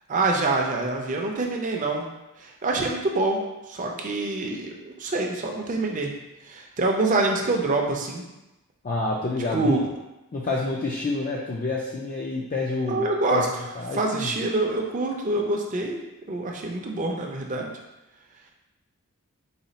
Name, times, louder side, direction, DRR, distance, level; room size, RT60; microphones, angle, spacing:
voice 1, 0.1-2.1 2.4-3.4 3.7-6.1 6.5-8.2 9.5-9.9 12.9-13.6 13.9-16.0 16.3-17.7, right 2 dB, 35° right, 1 dB, 0.5 m, -26 dB
voice 2, 8.8-9.8 10.3-13.0 13.3-13.4 13.8-14.3, left 3 dB, 35° left, -3 dB, 0.3 m, -28 dB
4.1 x 2.3 x 4.0 m, 0.99 s
head